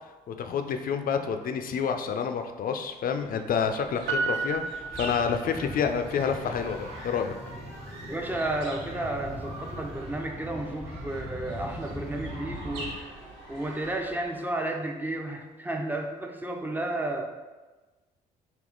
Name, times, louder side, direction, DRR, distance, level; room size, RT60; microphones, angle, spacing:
voice 1, 0.3-7.3, left 6 dB, 50° left, 7 dB, 0.4 m, -29 dB
sound 1, 3.1-14.6, right 1 dB, 85° right, 1.0 m, -44 dB
Piano, 4.1-5.9 6.2-6.3, right 4 dB, 65° right, 0.6 m, -32 dB
sound 2, 4.9-12.9, equal, 35° right, 1.4 m, -41 dB
voice 2, 8.1-13.0 13.5-17.3, right 1 dB, 10° right, 3 dB, 0.6 m, -32 dB
3.5 x 2.8 x 3.8 m, 1.2 s
supercardioid pair, 60°, 19 cm